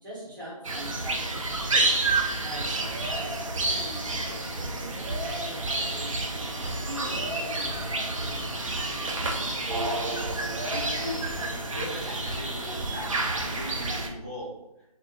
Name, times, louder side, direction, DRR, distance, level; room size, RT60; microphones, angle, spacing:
voice 1, 0.0-2.1 2.4-9.5, right 1 dB, 30° right, -7 dB, 0.9 m, -44 dB
sound 1, 0.6-14.1, right 2 dB, 55° right, 0.4 m, -29 dB
voice 2, 10.7-11.2 11.7-14.6, left 1 dB, 25° left, -6 dB, 0.3 m, -38 dB
2.3 x 2.0 x 2.7 m, 0.90 s
figure-of-eight pair, 160°, 20 cm